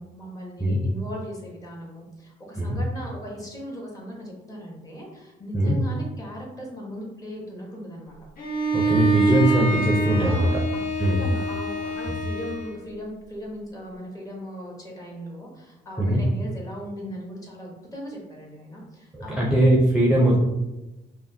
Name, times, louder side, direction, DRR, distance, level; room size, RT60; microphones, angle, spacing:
voice 1, 0.0-8.2 10.1-10.8 11.2-19.4, equal, 20° left, -2 dB, 1.0 m, -38 dB
Bowed string instrument, 8.4-12.8, right 3 dB, 55° left, 0.9 m, -25 dB
voice 2, 8.7-10.5 11.0-11.2 12.1-12.2 16.0-16.2 19.1-20.4, right 1 dB, 5° right, -5 dB, 0.6 m, -21 dB
5.8 x 2.1 x 2.7 m, 1.0 s
cardioid pair, 140°, 17 cm